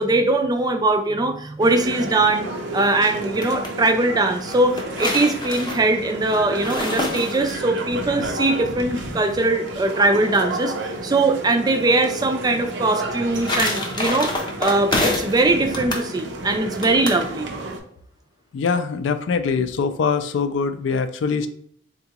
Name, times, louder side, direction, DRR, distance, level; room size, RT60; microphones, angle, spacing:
voice 1, 0.0-2.5 2.7-14.3 14.6-17.5, right 2 dB, 20° right, 6 dB, 0.3 m, -21 dB
sound 1, 1.6-17.8, right 1 dB, 70° right, 0.6 m, -32 dB
sound 2, 3.1-3.7 4.5-7.8 13.0-15.4 15.7-16.1 16.8-17.2, left 2 dB, 25° left, 0.6 m, -27 dB
voice 2, 18.5-21.5, left 5 dB, 75° left, 9 dB, 0.3 m, -23 dB
3.7 x 2.3 x 2.8 m, 0.66 s
head